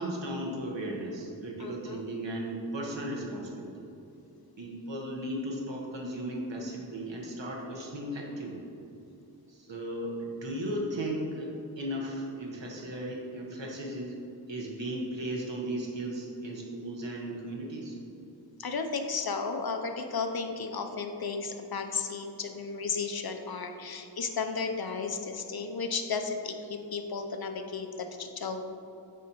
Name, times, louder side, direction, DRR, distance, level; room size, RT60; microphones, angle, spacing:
voice 1, 0.0-3.7 4.6-8.7 9.5-14.1 14.5-18.0, right 1 dB, 75° right, -1 dB, 1.2 m, -36 dB
voice 2, 1.6-2.0 18.6-28.7, left 4 dB, 55° left, 6 dB, 0.6 m, -34 dB
8.3 x 5.1 x 2.9 m, 2.8 s
wide cardioid pair, 65°, 44 cm